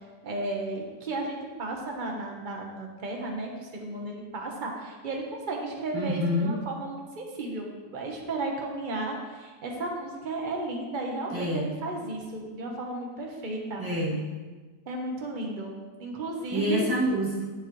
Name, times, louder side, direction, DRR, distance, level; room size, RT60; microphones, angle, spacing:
voice 1, 0.2-13.8 14.9-16.9, right 2 dB, 30° right, 0 dB, 1.2 m, -34 dB
voice 2, 5.9-6.5 11.3-11.7 13.8-14.2 16.5-17.5, equal, 10° right, -9 dB, 2.6 m, -27 dB
11.5 x 7.6 x 3.2 m, 1.4 s
omnidirectional pair, 1.7 m